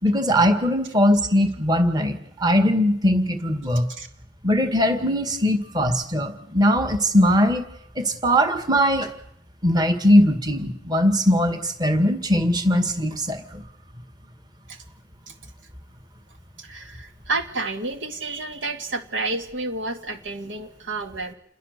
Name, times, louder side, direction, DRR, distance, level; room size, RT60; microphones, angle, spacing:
voice 1, 0.0-3.9 4.4-7.7 8.0-9.1 9.6-13.6, equal, 20° right, 7 dB, 1.9 m, -20 dB
voice 2, 16.6-21.3, right 2 dB, 80° right, 6 dB, 2.2 m, -30 dB
28.5 x 21.5 x 6.7 m, 0.74 s
head